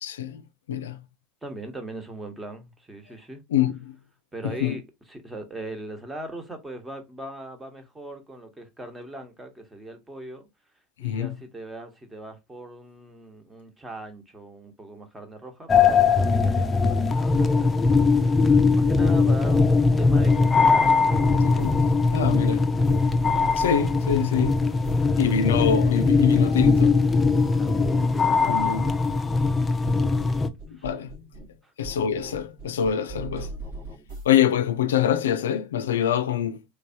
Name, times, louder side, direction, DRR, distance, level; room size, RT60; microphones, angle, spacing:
voice 1, 0.0-1.0 3.5-4.0 4.4-4.8 11.0-11.4 21.4-21.9 22.1-22.7 23.5-24.7 25.2-27.0 28.5-28.9 30.8-31.2 31.8-33.5 34.2-36.6, left 9 dB, 85° left, 0.4 m, -25 dB
voice 2, 1.4-3.4 4.3-4.8 5.1-10.4 11.0-21.3 27.6-28.8 30.2-30.9 31.6-31.7, right 1 dB, 15° right, 1.2 m, -40 dB
sound 1, 15.7-30.5, left 4 dB, 20° left, 0.5 m, -20 dB
sound 2, 17.8-19.6 19.8-25.6 25.8-27.6 27.8-29.6 29.8-31.6 31.8-34.3, right 3 dB, 65° right, 1.8 m, -41 dB
3.3 x 3.2 x 2.7 m
hypercardioid pair, 85°, 0 cm